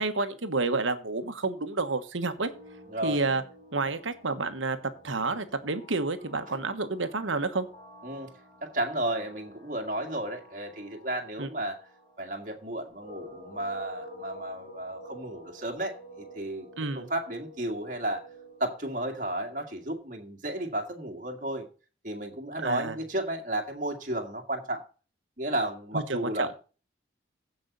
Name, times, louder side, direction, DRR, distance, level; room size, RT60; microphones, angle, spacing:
voice 1, 0.0-2.5 3.0-3.4 3.7-4.8 5.0-7.7 11.4-11.5 16.8-17.1 22.6-23.0 25.9-26.5, right 3 dB, 90° right, 1.3 m, -29 dB
sound 1, 2.4-19.9, equal, 25° left, 6.6 m, -50 dB
voice 2, 2.9-3.2 6.5-6.6 8.0-8.3 8.6-11.8 12.2-16.7 16.9-18.2 18.6-21.7 22.0-24.9 25.4-26.5, right 1 dB, 40° right, 2.0 m, -33 dB
15.5 x 5.5 x 4.0 m
head